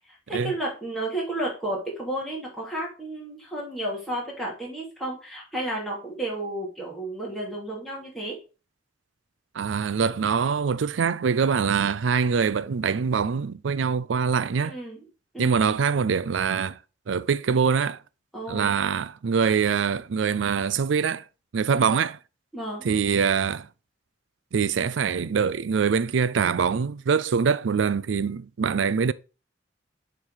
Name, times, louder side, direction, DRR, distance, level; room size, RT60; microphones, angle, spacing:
voice 1, 0.1-8.4 14.6-15.0 15.3-15.7 18.3-18.7 21.7-21.9 22.5-22.8, right 1 dB, ahead, 2.8 m, -32 dB
voice 2, 9.5-14.8 15.4-16.8 17.1-18.0 18.5-21.2 21.5-22.2 22.8-23.7 24.5-29.1, right 6 dB, 85° right, 0.4 m, -24 dB
7.2 x 4.1 x 4.9 m
head